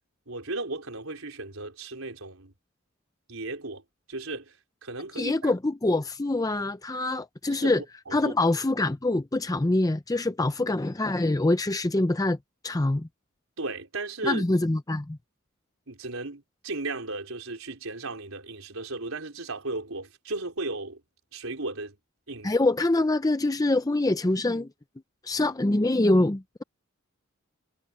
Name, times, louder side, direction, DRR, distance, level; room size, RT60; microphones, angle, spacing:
voice 1, 0.3-2.5 3.3-3.8 4.1-4.6 4.8-5.5 7.5-7.7 8.1-8.3 13.6-14.4 15.9-21.0 21.3-22.0 22.3-22.5, right 2 dB, 85° right, 4.3 m, -35 dB
voice 2, 5.2-7.8 8.1-12.4 12.6-13.1 14.2-15.2 22.4-24.7 25.2-26.6, left 2 dB, 15° left, 0.6 m, -25 dB
head